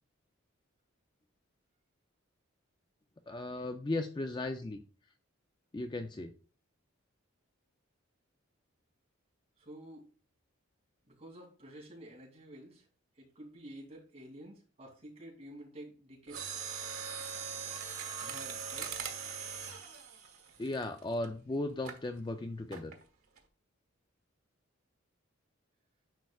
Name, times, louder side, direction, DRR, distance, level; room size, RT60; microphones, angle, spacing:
voice 1, 3.3-4.8 5.7-6.3 20.6-22.9, left 2 dB, 20° left, 7 dB, 0.4 m, -36 dB
voice 2, 9.6-10.1 11.1-12.9 13.2-16.5 18.2-19.0, right 1 dB, 30° right, -3 dB, 2.7 m, -50 dB
Mechanisms, 16.3-21.3 21.8-22.1 22.7-23.0 23.4-23.5, right 6 dB, 90° right, 1.3 m, -41 dB
10.5 x 4.6 x 2.3 m, 0.38 s
head